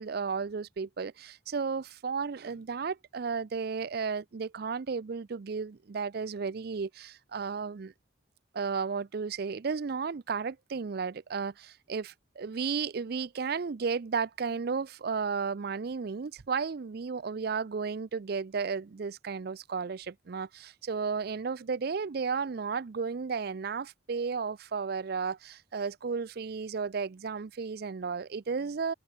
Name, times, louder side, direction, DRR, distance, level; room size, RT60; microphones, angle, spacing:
voice 1, 0.0-7.9 8.5-28.9, right 5 dB, 55° right, 0.5 m, -33 dB
head